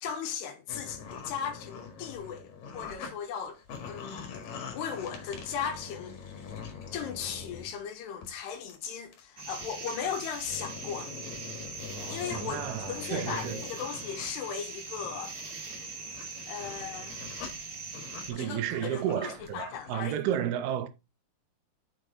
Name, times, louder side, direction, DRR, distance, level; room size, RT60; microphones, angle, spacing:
voice 1, 0.0-3.6 3.9-6.2 6.9-11.1 12.1-15.4 16.5-17.2 18.3-20.2, left 7 dB, 75° left, 3.4 m, -37 dB
sound 1, 0.7-3.1 3.4-7.8 8.2-8.8 9.1-9.2 9.6-9.7 10.3-14.4 14.8-20.1, left 6 dB, 60° left, 3.1 m, -44 dB
sound 2, 9.4-18.3, right 4 dB, 40° right, 2.3 m, -41 dB
voice 2, 11.9-13.6 18.3-20.9, right 10 dB, 80° right, 2.6 m, -32 dB
6.8 x 6.3 x 3.8 m
omnidirectional pair, 4.9 m